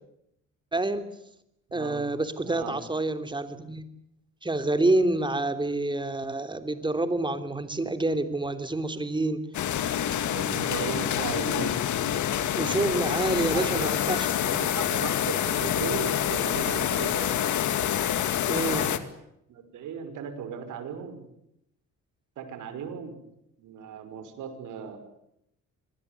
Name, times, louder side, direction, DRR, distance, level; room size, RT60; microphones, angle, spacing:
voice 1, 0.7-1.1 1.7-3.8 4.4-9.4 12.5-14.6 18.4-18.9, right 2 dB, 15° right, 9 dB, 3.2 m, -27 dB
voice 2, 1.7-2.1 2.4-2.7 10.3-11.8 13.3-13.9 14.5-17.4 18.6-19.1 19.5-21.2 22.4-23.2 23.6-25.0, right 7 dB, 80° right, 9 dB, 5.9 m, -37 dB
sound 1, 9.5-19.0, left 10 dB, 75° left, 2.4 m, -27 dB
26.0 x 20.5 x 9.5 m, 0.78 s
cardioid pair, 90°, 30 cm